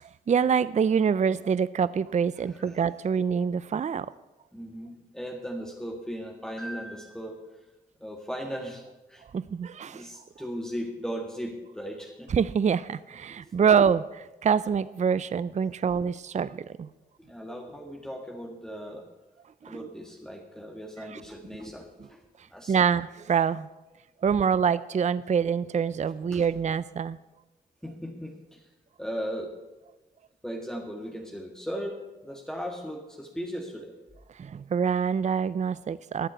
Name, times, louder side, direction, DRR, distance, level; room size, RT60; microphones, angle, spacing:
voice 1, 0.0-4.1 9.3-10.1 12.3-14.0 14.4-16.9 19.6-19.8 21.1-21.2 22.7-23.7 24.2-27.2 34.4-36.3, right 7 dB, 40° right, 18 dB, 0.4 m, -25 dB
voice 2, 2.4-2.8 4.5-7.7 8.0-8.8 9.1-9.2 9.9-12.3 13.3-13.6 17.2-19.0 19.6-22.8 26.3-26.5 27.8-28.7 29.0-29.5 30.4-33.9, equal, 5° left, 1 dB, 1.9 m, -37 dB
13.0 x 7.4 x 8.1 m, 1.1 s
supercardioid pair, 45°, 18 cm